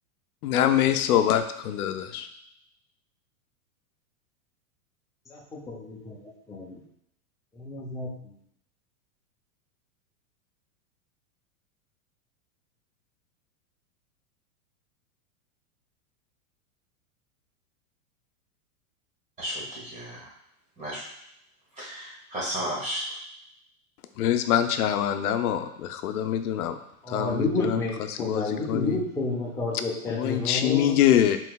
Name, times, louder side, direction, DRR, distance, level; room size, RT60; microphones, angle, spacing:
voice 1, 0.4-2.3 24.2-26.8 27.1-29.0 30.1-31.4, left 10 dB, 85° left, 8 dB, 0.6 m, -24 dB
voice 2, 5.3-6.1 6.5-6.8 7.6-8.1 27.0-30.9, left 2 dB, 5° left, -4 dB, 0.6 m, -30 dB
voice 3, 19.4-20.2 20.8-21.0 21.8-23.0, equal, 15° right, -5 dB, 1.4 m, -33 dB
4.4 x 3.8 x 2.3 m, 0.75 s
supercardioid pair, 135°, 43 cm